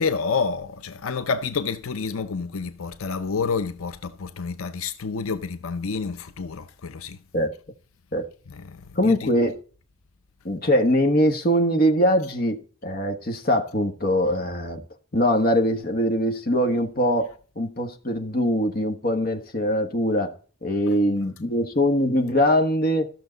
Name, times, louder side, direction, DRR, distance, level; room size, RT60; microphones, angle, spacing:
voice 1, 0.0-7.2 8.5-9.3, left 5 dB, 90° left, 0.7 m, -29 dB
voice 2, 9.0-9.6 10.4-14.8 15.1-20.3 20.6-23.1, equal, 45° left, 1.4 m, -22 dB
14.0 x 6.5 x 3.9 m
head